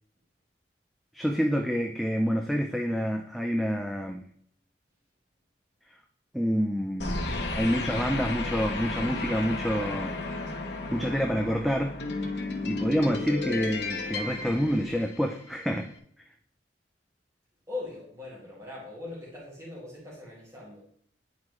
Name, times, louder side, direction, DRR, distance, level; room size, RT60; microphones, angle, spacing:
voice 1, 1.1-4.2 6.3-7.2 7.5-10.2 10.9-12.0 12.3-15.9, equal, ahead, 2 dB, 0.4 m, -28 dB
sound 1, 7.0-15.5, left 3 dB, 75° left, 1.2 m, -33 dB
voice 2, 17.7-20.8, left 2 dB, 20° right, -6 dB, 2.0 m, -40 dB
9.6 x 4.4 x 3.0 m, 0.63 s
head